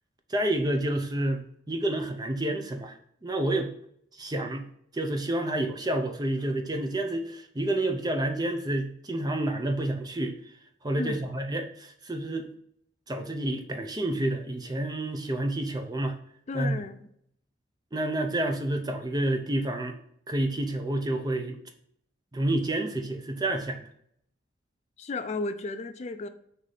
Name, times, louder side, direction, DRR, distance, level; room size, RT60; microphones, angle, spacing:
voice 1, 0.3-3.7 4.1-4.7 4.9-10.3 10.8-12.5 13.1-16.2 16.5-16.8 17.9-20.0 20.3-21.6 22.3-23.9, right 1 dB, 20° right, 5 dB, 0.5 m, -29 dB
voice 2, 16.5-17.1 25.0-26.3, left 3 dB, 35° left, 9 dB, 0.3 m, -33 dB
4.7 x 2.7 x 4.0 m, 0.70 s
head